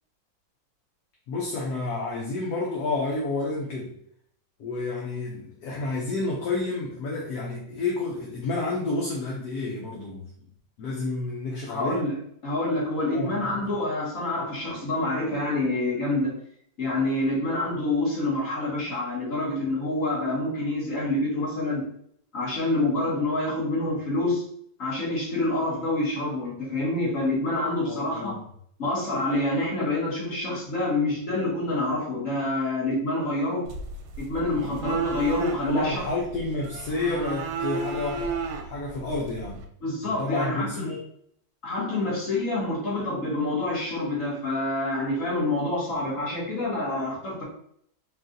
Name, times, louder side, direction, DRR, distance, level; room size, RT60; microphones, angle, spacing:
voice 1, 1.3-3.9 4.6-10.3 10.8-12.1 13.1-13.3 27.9-28.4 35.7-39.6 40.0-41.0, left 3 dB, 65° left, -3 dB, 1.2 m, -30 dB
voice 2, 11.7-12.2 12.4-16.4 16.8-21.9 22.3-24.4 24.8-28.4 28.8-33.6 34.2-36.0 39.8-40.9 41.6-47.4, left 2 dB, 45° left, -6 dB, 1.9 m, -27 dB
sound 1, 33.7-39.6, right 5 dB, 85° right, 1.4 m, -33 dB
4.1 x 2.6 x 3.8 m, 0.68 s
omnidirectional pair, 2.0 m